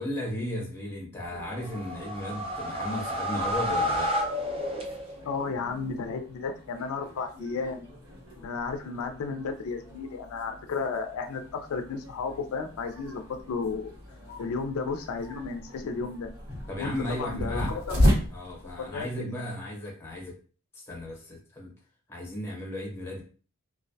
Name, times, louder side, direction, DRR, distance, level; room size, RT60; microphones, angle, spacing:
voice 1, 0.0-4.3 16.7-20.4 20.7-21.7 22.1-23.2, left 1 dB, 10° left, -2 dB, 0.8 m, -35 dB
sound 1, 1.2-19.2, equal, 75° right, 1.2 m, -35 dB
sound 2, 1.6-5.4, equal, 25° right, 0.5 m, -30 dB
voice 2, 5.2-7.9 8.4-11.4 11.7-13.9 14.4-16.3 16.8-16.9 17.2-18.0 18.9-19.4, left 4 dB, 85° left, 5 dB, 0.4 m, -33 dB
2.2 x 2.1 x 2.6 m, 0.39 s
head